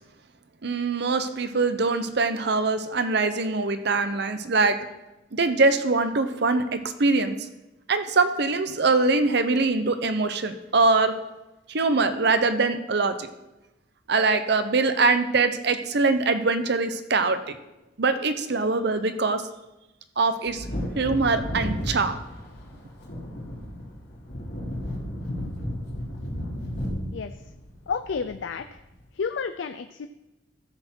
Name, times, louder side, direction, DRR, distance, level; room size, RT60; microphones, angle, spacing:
voice 1, 0.6-4.8 5.3-7.4 7.9-11.1 11.7-13.3 14.1-17.6 18.0-19.4 20.2-20.6 21.0-22.2, right 3 dB, 60° right, 9 dB, 0.8 m, -23 dB
Wind / Thunder, 20.4-28.7 29.0-29.1, equal, 60° left, 3.0 m, -33 dB
voice 2, 27.9-28.8 29.1-30.1, left 5 dB, 80° left, 9 dB, 0.4 m, -31 dB
14.0 x 6.6 x 4.5 m, 1.0 s
head